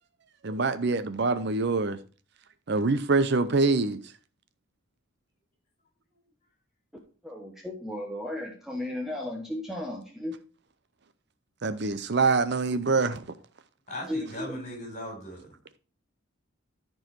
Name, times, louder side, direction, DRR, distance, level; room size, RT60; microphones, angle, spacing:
voice 1, 0.4-2.0 2.7-4.0 11.6-13.2, right 3 dB, 55° right, 0.6 m, -25 dB
voice 2, 7.2-10.3 14.1-14.6, left 1 dB, ahead, 1.1 m, -35 dB
voice 3, 13.9-15.5, left 1 dB, 35° left, 4.1 m, -38 dB
13.5 x 4.6 x 4.6 m
head